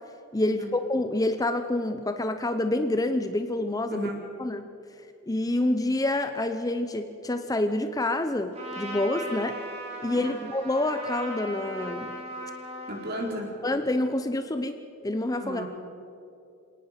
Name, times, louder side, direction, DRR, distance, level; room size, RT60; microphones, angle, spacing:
voice 1, 0.3-4.1 4.4-4.7 5.3-9.6 10.0-12.1 13.6-14.8 15.0-15.6, left 1 dB, 15° left, 8 dB, 0.7 m, -27 dB
Trumpet, 8.5-13.5, right 1 dB, 30° right, 3.8 m, -38 dB
voice 2, 12.9-13.5 15.4-15.6, right 1 dB, 50° right, 0 dB, 4.1 m, -34 dB
26.5 x 18.5 x 5.8 m, 2.7 s
head